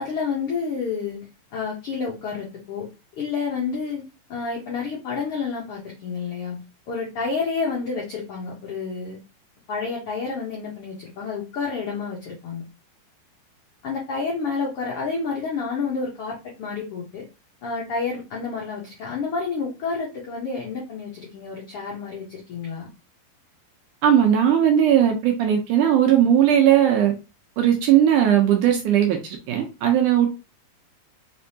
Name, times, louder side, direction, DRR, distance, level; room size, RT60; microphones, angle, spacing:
voice 1, 0.0-9.2 9.7-12.6 13.8-17.3 17.6-22.9, left 5 dB, 80° left, 1.3 m, -29 dB
voice 2, 24.0-27.1 27.6-30.3, right 10 dB, 75° right, 2.0 m, -18 dB
5.3 x 3.4 x 2.8 m
omnidirectional pair, 4.2 m